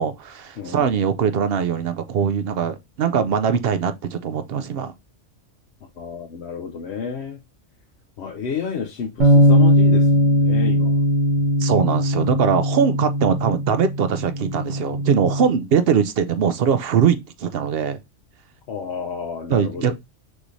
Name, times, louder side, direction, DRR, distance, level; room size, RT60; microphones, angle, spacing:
voice 1, 0.0-4.9 11.6-18.0 19.5-19.9, right 7 dB, 60° right, 0.7 m, -21 dB
voice 2, 0.6-1.0 6.0-7.4 8.2-11.0 18.7-19.9, left 6 dB, 70° left, 0.8 m, -31 dB
sound 1, 9.2-15.4, equal, 85° right, 1.8 m, -19 dB
6.1 x 3.1 x 2.6 m
omnidirectional pair, 1.2 m